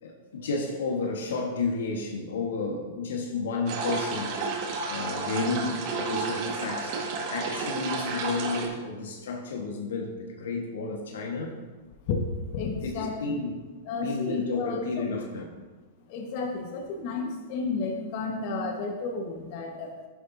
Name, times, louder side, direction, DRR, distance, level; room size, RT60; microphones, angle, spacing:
voice 1, 0.0-4.4 4.9-7.0 7.3-11.6 12.8-13.6 13.9-15.4, left 3 dB, 75° left, 2 dB, 1.5 m, -31 dB
sound 1, 3.7-8.7, right 4 dB, 50° right, 1.7 m, -31 dB
voice 2, 12.0-13.3 13.8-15.1 16.1-20.0, left 3 dB, 50° left, 2 dB, 1.5 m, -32 dB
11.0 x 10.0 x 2.8 m, 1.3 s
hypercardioid pair, 115°, 0 cm